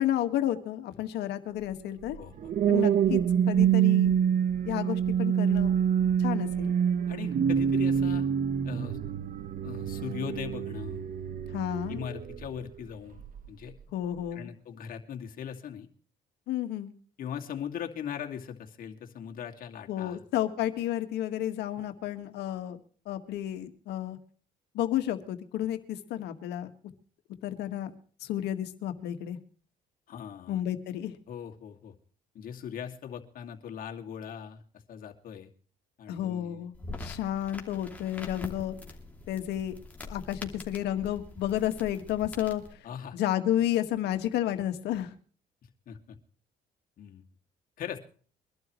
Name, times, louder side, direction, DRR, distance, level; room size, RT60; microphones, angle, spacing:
voice 1, 0.0-2.2 2.7-3.2 3.5-4.1 4.7-5.8 6.2-6.7 11.5-12.0 13.9-14.5 16.5-16.9 19.9-22.8 23.1-24.2 24.7-26.7 27.4-27.9 28.2-29.4 30.5-31.2 36.1-38.8 39.3-39.7 40.0-42.6 43.1-45.1, left 12 dB, 80° left, 8 dB, 1.9 m, -31 dB
sound 1, 2.1-12.6 13.2-13.5, right 8 dB, 55° right, 1.3 m, -26 dB
voice 2, 2.2-2.8 7.1-8.3 8.6-9.0 9.6-11.0 11.9-13.7 14.3-15.9 17.2-20.2 30.1-30.6 31.3-31.9 32.3-34.6 34.9-35.5 36.0-36.7 42.8-43.2 45.9-46.2 47.0-47.2 47.8-48.0, left 8 dB, 55° left, 2 dB, 2.5 m, -40 dB
sound 2, 36.7-42.7, left 2 dB, 10° left, 2.8 m, -44 dB
23.5 x 12.0 x 3.2 m, 0.43 s
cardioid pair, 110°, 17 cm